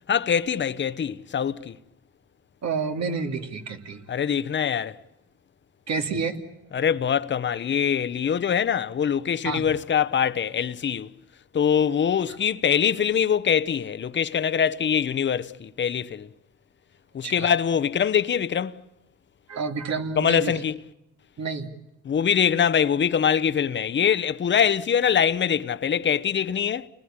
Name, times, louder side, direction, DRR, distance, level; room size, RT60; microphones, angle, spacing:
voice 1, 0.1-1.8 4.1-5.0 6.7-11.1 11.5-16.3 17.1-18.8 20.2-20.8 22.0-26.9, left 8 dB, 40° left, 0.9 m, -23 dB
voice 2, 2.6-4.0 5.9-6.4 9.4-9.7 17.2-17.5 19.5-20.5 21.4-21.7, right 5 dB, 60° right, 2.9 m, -29 dB
30.0 x 20.0 x 8.8 m
cardioid pair, 90°, 30 cm